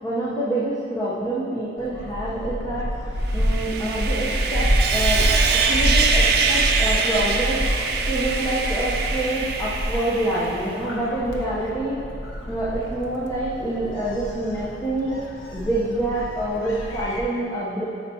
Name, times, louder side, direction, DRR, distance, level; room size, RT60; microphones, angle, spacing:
voice 1, 0.0-5.4 5.7-12.0 12.4-15.2 15.5-17.8, right 1 dB, 15° left, -9 dB, 0.8 m, -27 dB
Gull seagull, 1.8-17.2, equal, 85° left, 0.9 m, -27 dB
Sawing, 3.3-10.7, right 5 dB, 50° right, 0.5 m, -24 dB
9.6 x 5.8 x 2.8 m, 2.4 s
head